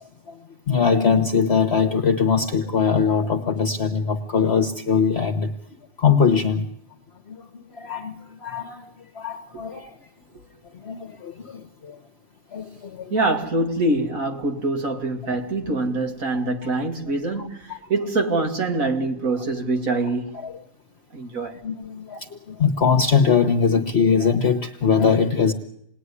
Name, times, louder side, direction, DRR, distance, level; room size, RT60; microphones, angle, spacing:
voice 1, 0.7-5.5 6.0-6.7 7.3-7.4 7.7-8.1 8.4-8.9 9.1-9.9 10.8-12.0 12.5-13.3 15.2-15.4 16.3-16.7 17.4-17.8 20.3-20.6 21.6-25.5, left 6 dB, 45° left, 1.3 m, -22 dB
voice 2, 13.1-20.3 21.1-21.6, right 2 dB, 60° right, 2.7 m, -24 dB
27.5 x 20.0 x 9.8 m
omnidirectional pair, 1.6 m